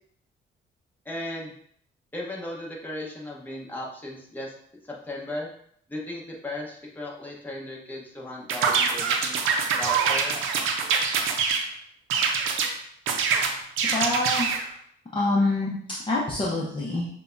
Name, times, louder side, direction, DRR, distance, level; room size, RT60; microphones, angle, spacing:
voice 1, 1.0-1.5 2.1-4.5 4.8-5.5 5.9-9.4 9.8-10.6, left 1 dB, 10° left, -3 dB, 1.2 m, -36 dB
sound 1, 8.5-11.7 12.1-12.7 13.1-14.6, right 5 dB, 90° right, 0.6 m, -24 dB
voice 2, 13.9-14.5 15.1-17.1, left 2 dB, 25° left, -6 dB, 0.8 m, -26 dB
6.7 x 2.3 x 2.6 m, 0.65 s
cardioid pair, 90°, 20 cm